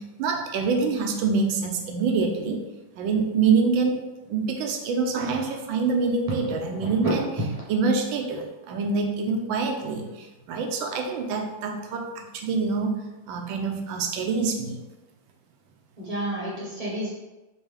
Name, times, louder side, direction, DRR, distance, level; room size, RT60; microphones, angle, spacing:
voice 1, 0.0-2.6 3.0-4.0 4.3-7.3 7.7-12.9 13.3-14.8, right 4 dB, 85° right, 3 dB, 1.3 m, -26 dB
voice 2, 6.4-7.2 16.0-17.1, right 1 dB, 30° right, -6 dB, 0.7 m, -30 dB
4.4 x 2.7 x 3.2 m, 1.1 s
omnidirectional pair, 2.1 m